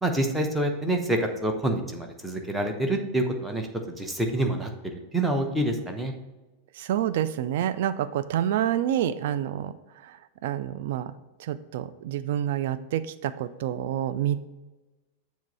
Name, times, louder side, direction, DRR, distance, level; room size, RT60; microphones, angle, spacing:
voice 1, 0.0-3.7 4.0-6.1, right 1 dB, 5° right, 3 dB, 0.9 m, -27 dB
voice 2, 6.7-9.7 10.0-11.1 11.4-14.4, right 11 dB, 55° right, 12 dB, 0.3 m, -28 dB
7.3 x 3.1 x 5.4 m, 1.1 s
figure-of-eight pair, 90°, 0 cm